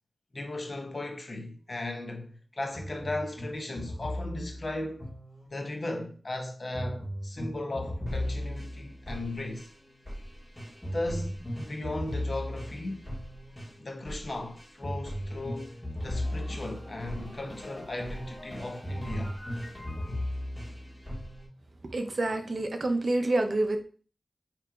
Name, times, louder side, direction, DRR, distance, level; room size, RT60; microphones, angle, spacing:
voice 1, 0.3-5.1 5.5-9.7 10.9-13.0 13.8-19.4, left 2 dB, 50° left, 0.7 m, -36 dB
sound 1, 2.7-5.8 6.7-21.5, equal, 15° left, 1.6 m, -37 dB
voice 2, 21.8-23.8, right 2 dB, 60° right, 0.5 m, -28 dB
4.6 x 2.9 x 2.3 m
wide cardioid pair, 75°, 0 cm